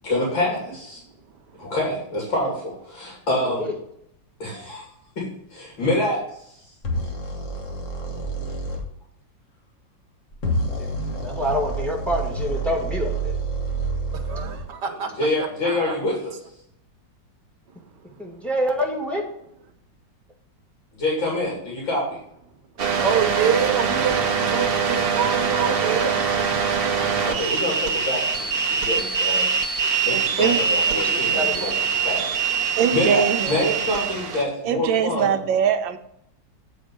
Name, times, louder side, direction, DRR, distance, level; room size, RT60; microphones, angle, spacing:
voice 1, 0.0-1.0 1.6-3.7 4.4-4.8 5.2-6.5 14.9-16.4 20.9-22.0 27.2-29.5 29.8-31.7 32.0-35.4, left 1 dB, 85° left, 3.4 m, -26 dB
sound 1, 6.8-8.8 10.3-14.7, right 2 dB, 45° left, 1.5 m, -28 dB
voice 2, 10.8-13.4 18.2-19.2 30.9-31.7, equal, ahead, 1.4 m, -27 dB
voice 3, 14.3-15.1 15.6-16.0 23.0-26.2, right 7 dB, 65° right, 1.5 m, -26 dB
sound 2, 22.8-34.4, right 6 dB, 45° right, 0.7 m, -23 dB
voice 4, 30.1-30.6 32.8-33.6 34.6-36.0, right 8 dB, 80° right, 1.4 m, -22 dB
8.6 x 4.5 x 6.6 m
omnidirectional pair, 2.0 m